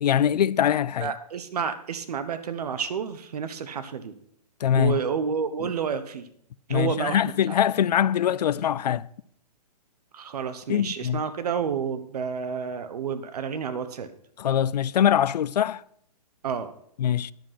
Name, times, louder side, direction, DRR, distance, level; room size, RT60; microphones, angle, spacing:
voice 1, 0.0-1.1 4.6-5.0 6.7-9.1 10.7-11.2 14.4-15.8 17.0-17.3, left 9 dB, 80° left, 0.5 m, -23 dB
voice 2, 1.0-4.1 4.7-6.3 6.7-7.2 7.5-7.6 10.1-14.1 16.4-16.7, right 6 dB, 70° right, 1.0 m, -30 dB
10.5 x 7.6 x 5.7 m
hypercardioid pair, 150°, 21 cm